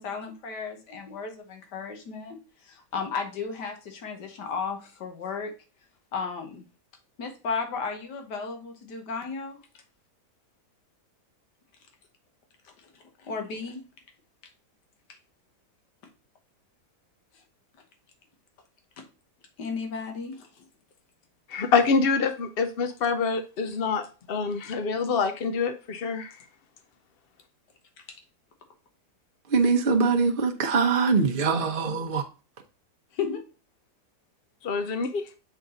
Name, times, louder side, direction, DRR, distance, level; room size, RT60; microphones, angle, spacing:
voice 1, 0.0-2.4 2.6-5.5 6.1-6.7 7.2-9.6 13.2-13.8 19.0-19.1 19.6-20.5 33.1-33.4, left 5 dB, 85° left, 1.8 m, -34 dB
voice 2, 21.5-26.4 34.6-35.2, left 5 dB, 60° left, 0.6 m, -26 dB
voice 3, 29.5-32.3, right 4 dB, 45° right, 0.8 m, -23 dB
7.2 x 4.0 x 3.7 m
omnidirectional pair, 1.8 m